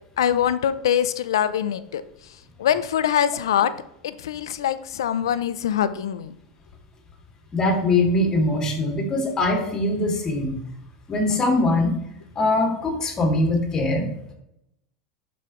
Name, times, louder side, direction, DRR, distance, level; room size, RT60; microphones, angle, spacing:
voice 1, 0.2-2.0 2.6-3.8 4.0-6.3, left 9 dB, 90° left, 13 dB, 0.6 m, -23 dB
voice 2, 7.5-10.5 11.1-11.9 12.4-14.1, left 2 dB, 25° left, 1 dB, 2.7 m, -22 dB
12.0 x 5.5 x 3.2 m, 0.79 s
supercardioid pair, 115°, 2 cm